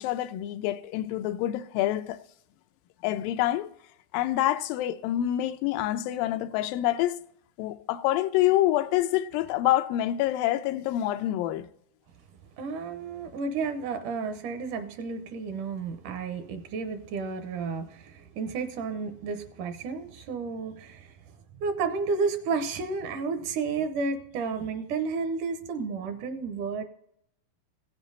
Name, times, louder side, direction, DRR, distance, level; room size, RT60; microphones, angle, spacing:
voice 1, 0.0-2.2 3.0-3.7 4.1-7.2 7.6-11.7, left 13 dB, 85° left, 2.3 m, -26 dB
voice 2, 12.6-21.2 21.6-26.8, right 4 dB, 70° right, 2.2 m, -32 dB
16.5 x 7.3 x 4.0 m
omnidirectional pair, 4.0 m